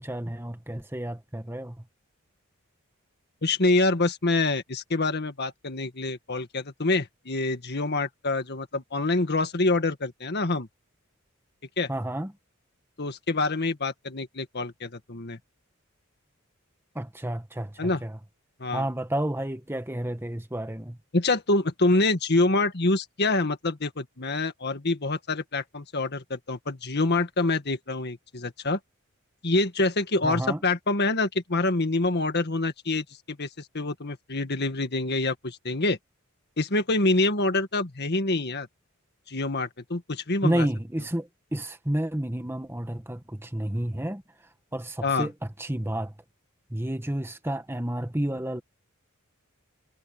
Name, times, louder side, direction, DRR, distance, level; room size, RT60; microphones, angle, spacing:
voice 1, 0.0-1.8 11.9-12.3 16.9-18.2 18.7-21.0 30.2-30.6 40.4-44.2 44.7-45.3 45.6-46.1 46.7-48.6, right 1 dB, 10° right, 1.4 m, -30 dB
voice 2, 3.4-10.7 11.8-11.9 13.0-15.4 17.8-18.0 18.6-18.9 21.1-28.8 29.4-36.0 36.6-38.7 39.3-40.7 45.0-45.3, left 2 dB, 50° left, 1.7 m, -26 dB
head